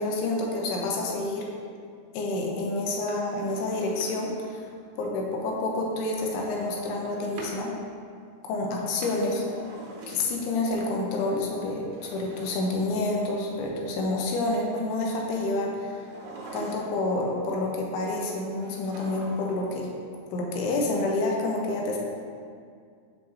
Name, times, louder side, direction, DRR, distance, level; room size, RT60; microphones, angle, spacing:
voice 1, 0.0-1.5 2.1-4.7 5.0-7.7 8.4-9.4 10.1-16.0 16.5-19.9 20.3-22.0, left 2 dB, 80° left, -1 dB, 2.6 m, -28 dB
Drawer open or close, 2.9-4.5 6.1-7.6 8.8-10.6 11.8-13.5 15.9-17.2 18.6-19.7 20.0-20.1, right 3 dB, 75° right, 3.0 m, -44 dB
6.8 x 5.0 x 3.1 m, 2.2 s
omnidirectional pair, 4.9 m